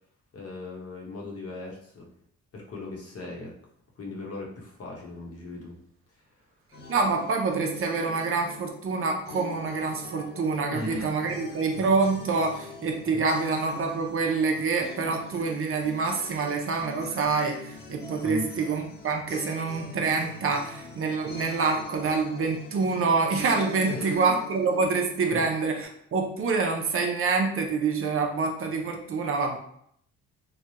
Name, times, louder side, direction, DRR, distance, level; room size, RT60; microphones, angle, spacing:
voice 1, 0.3-2.1 2.5-3.5 4.0-5.8 10.7-11.3 13.1-13.3 18.2-18.5 23.9-24.2 25.3-25.5, left 2 dB, 55° left, -2 dB, 1.0 m, -37 dB
sound 1, 6.7-25.8, left 3 dB, 35° left, 0.6 m, -43 dB
voice 2, 6.9-29.6, right 4 dB, 45° right, 2 dB, 0.6 m, -26 dB
3.2 x 2.3 x 2.8 m, 0.68 s
cardioid pair, 90°, 30 cm